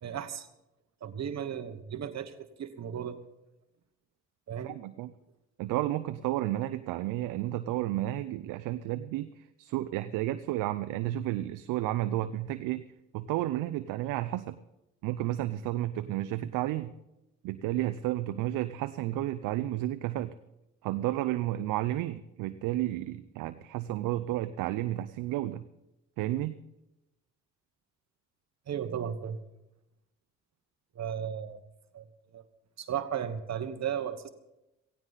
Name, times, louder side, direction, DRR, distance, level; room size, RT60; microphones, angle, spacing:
voice 1, 0.0-0.5 1.0-3.2 4.5-4.7 28.7-29.4 30.9-31.6 31.9-32.1 32.3-32.4 32.8-34.3, right 8 dB, 55° right, 10 dB, 1.3 m, -35 dB
voice 2, 4.6-5.1 5.6-12.8 13.1-14.6 15.0-16.9 17.4-20.3 20.8-25.6 26.2-26.6, right 14 dB, 80° right, 11 dB, 0.6 m, -32 dB
17.0 x 16.5 x 4.1 m, 0.91 s
supercardioid pair, 55°, 32 cm